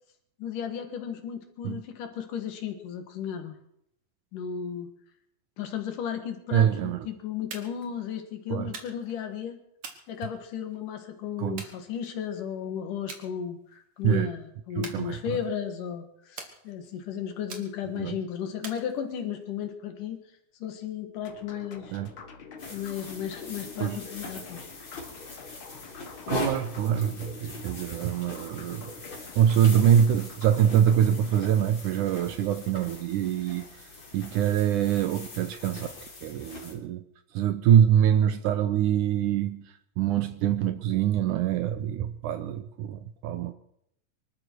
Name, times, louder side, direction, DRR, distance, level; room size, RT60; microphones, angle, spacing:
voice 1, 0.4-3.6 4.3-4.9 5.6-9.6 10.1-20.2 20.6-22.0 22.7-24.7, left 8 dB, 70° left, 6 dB, 3.1 m, -34 dB
voice 2, 6.5-7.1 8.5-8.7 11.4-11.6 14.0-14.3 14.8-15.4 17.9-18.2 21.9-22.1 23.8-24.0 26.3-28.9 29.4-33.7 34.1-35.9 36.2-37.0 37.3-43.5, right 9 dB, 75° right, 10 dB, 2.0 m, -24 dB
sound 1, 7.5-7.9 8.7-9.2 9.8-10.8 11.6-12.4 13.1-13.3 13.7-14.0 14.8-15.6 16.4-17.0 17.5-18.0 18.6-19.4, right 4 dB, 45° right, 2.4 m, -44 dB
sound 2, 21.2-31.7, left 5 dB, 50° left, 1.8 m, -46 dB
sound 3, 22.6-36.7, left 2 dB, 35° left, 3.9 m, -41 dB
24.5 x 13.0 x 4.6 m, 0.74 s
omnidirectional pair, 4.0 m